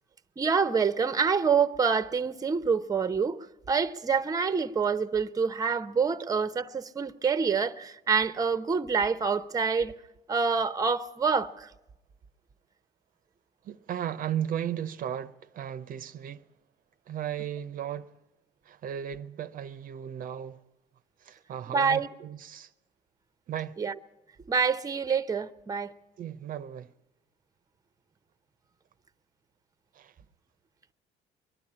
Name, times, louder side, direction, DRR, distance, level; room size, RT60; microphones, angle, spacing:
voice 1, 0.4-9.9 10.3-11.7 21.7-22.1 23.8-23.9 24.5-25.9, right 5 dB, 20° right, 0.8 m, -27 dB
voice 2, 13.6-16.4 17.1-18.1 18.6-20.6 21.2-22.7 23.5-23.8 26.2-26.9 29.9-30.1, right 9 dB, 55° right, 0.7 m, -35 dB
22.5 x 12.0 x 9.9 m
cardioid pair, 110°, 17 cm